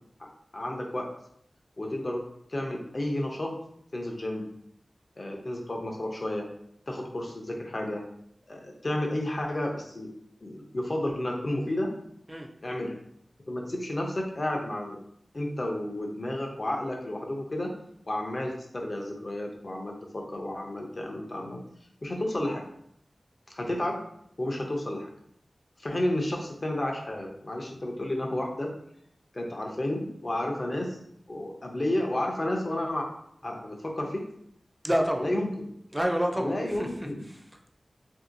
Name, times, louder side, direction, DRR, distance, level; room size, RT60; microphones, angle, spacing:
voice 1, 0.5-1.1 1.8-2.2 2.5-3.5 3.9-4.5 5.2-6.5 6.9-8.0 8.5-10.1 10.4-11.9 12.6-13.0 13.5-15.0 15.3-17.7 18.1-21.6 22.0-22.6 23.5-24.0 24.4-25.1 25.8-28.7 29.3-31.0 31.3-33.1 33.4-34.2 35.2-35.7 36.4-37.3, left 1 dB, 45° left, 1 dB, 0.6 m, -31 dB
voice 2, 34.8-35.3 35.9-36.9 37.3-37.4, equal, 10° right, 3 dB, 0.4 m, -28 dB
2.9 x 2.7 x 2.5 m, 0.71 s
wide cardioid pair, 90°, 0 cm